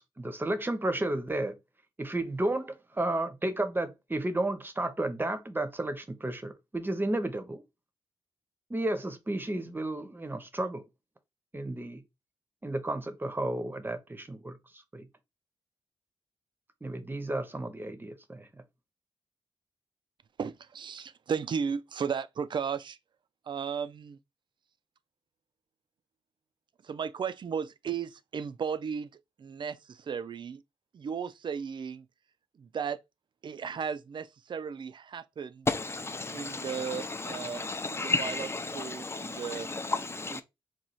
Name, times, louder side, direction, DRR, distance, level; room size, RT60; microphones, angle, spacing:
voice 1, 0.2-1.5 2.0-7.6 8.7-10.8 11.5-12.0 12.6-15.1 16.8-18.6, right 1 dB, 20° right, 0.7 m, -32 dB
voice 2, 20.4-23.0 23.5-24.2 26.8-29.1 29.4-30.6 30.9-32.1 32.6-33.0 33.4-35.7 36.3-39.7 40.3-40.4, right 6 dB, 50° right, 0.3 m, -35 dB
voice 3, 35.7-40.4, left 3 dB, 25° left, 0.5 m, -33 dB
3.0 x 2.3 x 4.0 m
cardioid pair, 65°, 10 cm